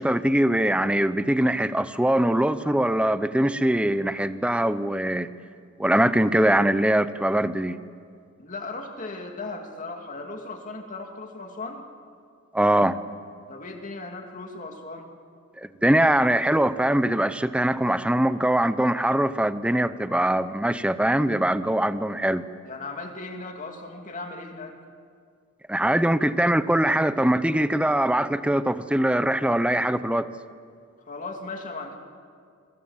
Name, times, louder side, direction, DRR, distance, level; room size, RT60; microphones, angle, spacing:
voice 1, 0.0-5.3 5.8-7.8 12.5-13.0 15.6-22.5 25.7-30.3, right 1 dB, 5° right, 13 dB, 0.7 m, -22 dB
voice 2, 8.4-11.9 13.5-15.1 22.6-24.8 31.1-32.0, left 3 dB, 40° left, 3 dB, 2.5 m, -37 dB
29.5 x 22.5 x 7.4 m, 2.2 s
head